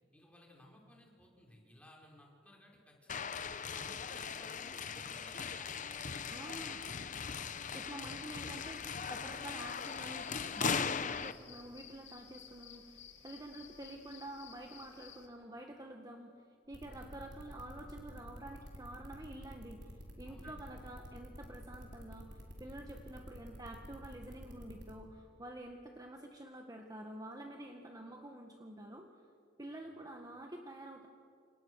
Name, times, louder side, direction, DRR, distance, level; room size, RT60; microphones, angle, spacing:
voice 1, 0.1-3.4 3.7-7.8 20.3-20.7 29.9-30.0, left 1 dB, 5° left, -2 dB, 5.3 m, -60 dB
sound 1, 3.1-11.3, left 6 dB, 45° left, 0.9 m, -39 dB
voice 2, 6.3-6.8 7.7-16.3 16.7-19.8 20.2-29.1 29.6-31.1, right 1 dB, 20° right, 2 dB, 1.7 m, -48 dB
sound 2, 9.7-15.3, left 9 dB, 85° left, 2.5 m, -55 dB
sound 3, 16.7-24.9, equal, 65° right, 5.1 m, -49 dB
29.5 x 27.5 x 6.5 m, 2.3 s
head